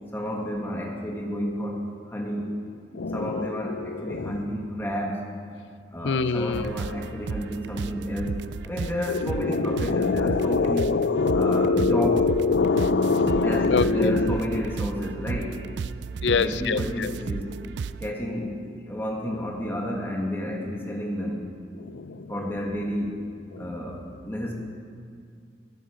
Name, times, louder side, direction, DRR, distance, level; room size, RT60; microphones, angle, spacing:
voice 1, 0.1-2.5 3.1-5.3 5.9-10.9 11.3-12.2 13.4-15.6 16.3-17.6 18.0-21.4 22.3-23.2 23.6-24.5, equal, 15° left, -1 dB, 1.9 m, -31 dB
voice 2, 2.9-3.5 3.8-4.4 6.0-6.7 9.1-14.6 16.2-17.1 21.8-22.3 23.5-23.6, left 4 dB, 85° left, 14 dB, 0.5 m, -24 dB
sound 1, 6.5-18.1, right 5 dB, 85° right, 0.4 m, -34 dB
15.0 x 13.5 x 5.1 m, 2.2 s
head